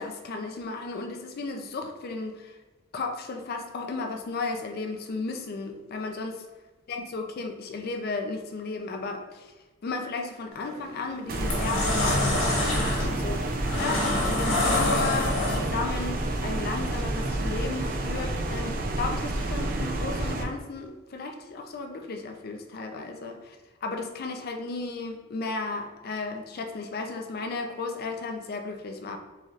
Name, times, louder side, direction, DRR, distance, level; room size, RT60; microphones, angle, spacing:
voice 1, 0.0-2.5 2.9-6.4 6.9-9.5 9.8-13.4 13.7-23.6 23.8-29.2, left 3 dB, 50° left, 5 dB, 0.4 m, -34 dB
sound 1, 10.5-10.8 11.2-15.9, left 2 dB, 80° left, 1.2 m, -27 dB
sound 2, 11.3-20.4, right 1 dB, 45° right, 0.4 m, -29 dB
3.9 x 3.2 x 2.4 m, 1.2 s
head